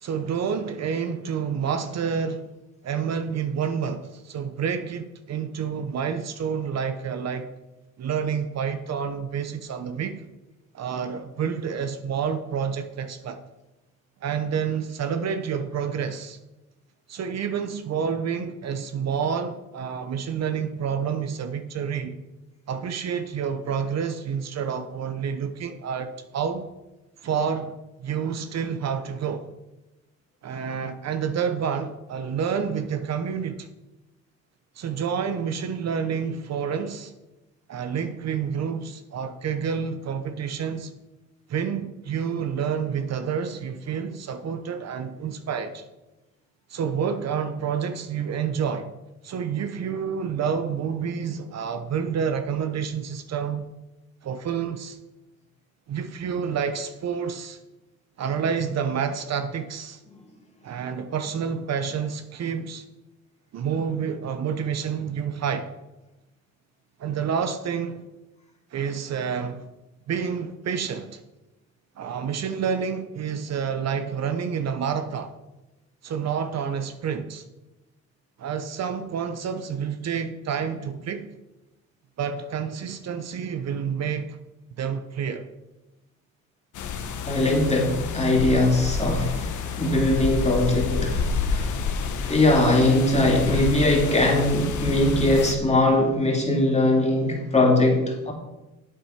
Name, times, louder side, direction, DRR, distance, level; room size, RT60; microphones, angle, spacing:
voice 1, 0.0-2.5 2.8-7.5 8.0-10.2 10.7-13.4 14.2-16.4 17.1-22.2 22.7-26.7 27.2-27.7 28.0-29.5 30.4-33.7 34.8-37.1 37.7-40.9 41.5-45.9 46.7-48.9 49.2-53.7 54.2-55.0 55.9-57.6 58.2-60.0 60.6-62.9 63.5-65.7 67.0-68.0 68.7-69.7 70.1-71.2 72.0-75.3 76.0-77.4 78.4-81.3 82.2-84.4 84.8-85.5, right 7 dB, 60° right, 0.9 m, -29 dB
sound 1, 86.8-95.6, left 5 dB, 75° left, 1.2 m, -29 dB
voice 2, 87.3-91.9 92.2-98.3, left 1 dB, 20° left, 2.9 m, -21 dB
8.4 x 8.1 x 5.8 m
cardioid pair, 90°, 30 cm